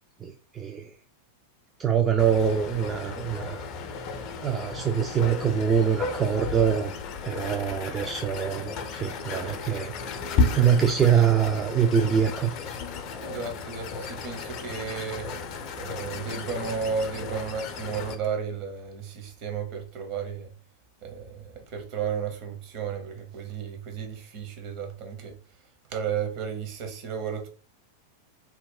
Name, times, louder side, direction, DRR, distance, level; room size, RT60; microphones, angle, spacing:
voice 1, 0.2-0.9 1.8-3.6 4.4-6.9 7.2-9.9 10.5-12.6, right 8 dB, 20° right, 0.3 m, -24 dB
sound 1, 2.2-18.2, left 4 dB, 40° left, 0.4 m, -33 dB
voice 2, 13.2-15.3 15.8-20.5 21.0-25.3 25.9-27.5, right 6 dB, 40° right, 0.8 m, -33 dB
2.7 x 2.1 x 3.7 m
figure-of-eight pair, 90°, 0 cm